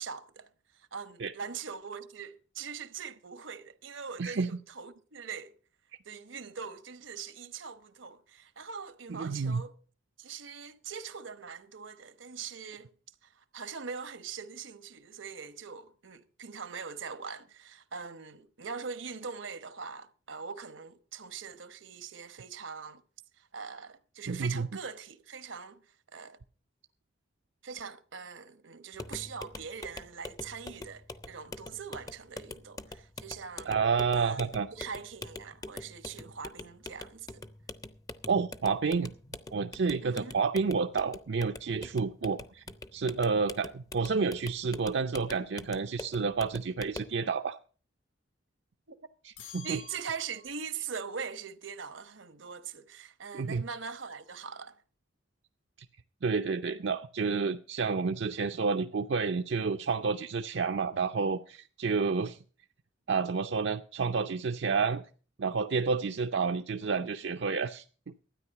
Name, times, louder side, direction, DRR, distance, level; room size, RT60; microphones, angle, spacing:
voice 1, 0.0-5.5 6.0-9.7 10.2-12.9 13.2-23.0 23.4-26.4 27.6-33.7 34.1-34.4 34.7-37.4 40.0-40.4 48.9-49.0 49.6-54.8, right 6 dB, 80° right, 1.0 m, -42 dB
voice 2, 4.2-4.5 9.1-9.6 24.3-24.7 33.7-34.7 38.3-39.1 39.5-42.6 42.9-47.6 49.2-49.8 53.3-53.6 56.2-62.4 63.1-65.0 65.4-67.8, right 5 dB, 60° right, 0.5 m, -30 dB
sound 1, 28.9-47.2, left 2 dB, 20° left, 0.6 m, -45 dB
sound 2, 49.4-50.7, left 5 dB, 80° left, 2.1 m, -49 dB
13.0 x 9.5 x 5.7 m
head